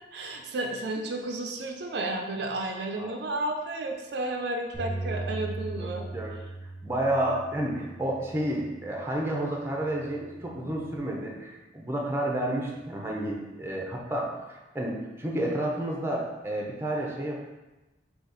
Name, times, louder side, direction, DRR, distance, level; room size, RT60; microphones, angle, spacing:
voice 1, 0.1-6.1, right 2 dB, 60° right, 2 dB, 0.4 m, -32 dB
Bass guitar, 4.7-9.2 9.8-11.0, right 2 dB, 5° left, 1.1 m, -39 dB
voice 2, 5.8-6.3 6.8-17.3, right 1 dB, 15° right, -2 dB, 0.6 m, -30 dB
4.1 x 2.8 x 4.0 m, 1.1 s
head